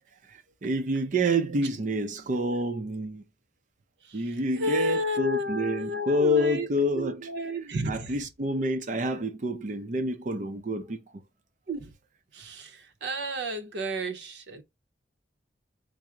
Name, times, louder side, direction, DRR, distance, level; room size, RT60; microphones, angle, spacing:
voice 1, 0.3-3.2 4.1-7.3 7.9-11.0, equal, 45° right, 0.5 m, -28 dB
voice 2, 4.0-6.7 6.9-8.2 11.7-11.9 12.3-14.6, equal, 80° right, 0.7 m, -32 dB
3.6 x 2.0 x 4.3 m
head